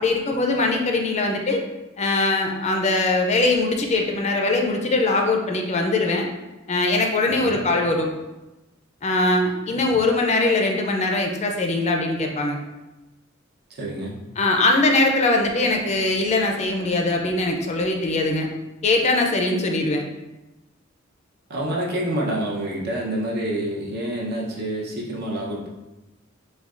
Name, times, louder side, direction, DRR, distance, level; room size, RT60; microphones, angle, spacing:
voice 1, 0.0-1.6 2.0-6.3 6.7-8.1 9.0-12.6 14.4-18.5 18.8-20.0, left 2 dB, 35° left, 2 dB, 0.4 m, -21 dB
voice 2, 7.2-7.6 9.7-9.9 13.8-14.1 21.5-25.7, right 1 dB, 55° right, -2 dB, 0.8 m, -28 dB
6.6 x 2.3 x 2.5 m, 1.0 s
head